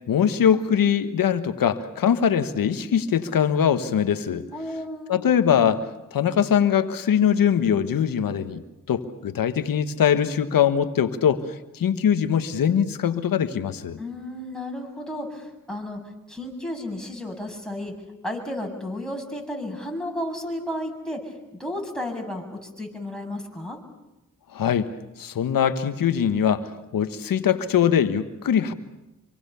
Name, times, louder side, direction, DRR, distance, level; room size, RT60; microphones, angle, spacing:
voice 1, 0.1-4.5 5.1-5.8 6.1-8.6 8.9-11.4 11.7-14.0 24.5-24.9 25.2-28.7, left 8 dB, 85° left, 10 dB, 1.4 m, -22 dB
voice 2, 4.5-5.2 14.0-16.0 16.3-17.9 18.2-21.3 21.6-23.8, left 1 dB, ahead, 1 dB, 7.4 m, -33 dB
25.5 x 24.5 x 7.0 m, 0.96 s
cardioid pair, 45°, 33 cm